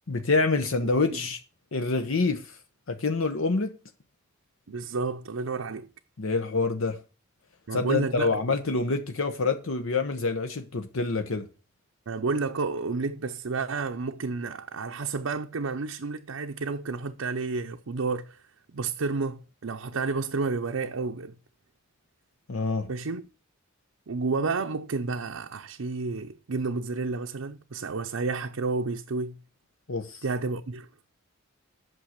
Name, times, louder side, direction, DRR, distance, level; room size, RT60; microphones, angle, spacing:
voice 1, 0.1-1.4 1.7-2.6 2.9-3.8 6.2-7.0 7.7-11.5 22.5-22.9 29.9-30.2, left 3 dB, 75° left, 0.9 m, -26 dB
voice 2, 4.7-5.9 7.7-8.4 12.1-18.4 18.7-21.4 22.9-23.2 24.1-29.4 30.2-30.9, right 4 dB, 80° right, 0.7 m, -31 dB
8.9 x 6.2 x 6.5 m
head